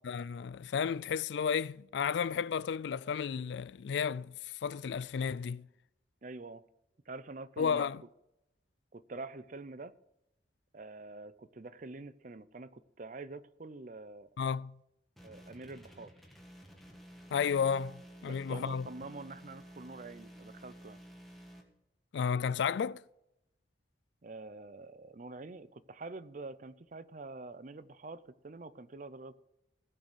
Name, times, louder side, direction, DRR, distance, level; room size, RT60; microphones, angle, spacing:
voice 1, 0.0-5.7 7.6-8.0 14.4-14.8 17.3-18.9 22.1-23.0, left 6 dB, 70° left, 0.3 m, -33 dB
voice 2, 6.2-6.6 7.1-7.9 8.9-9.9 10.7-14.5 15.2-16.1 18.2-21.0 24.2-29.3, right 3 dB, 45° right, 0.6 m, -46 dB
sound 1, 15.2-21.6, equal, ahead, 1.6 m, -53 dB
16.5 x 6.5 x 6.3 m
head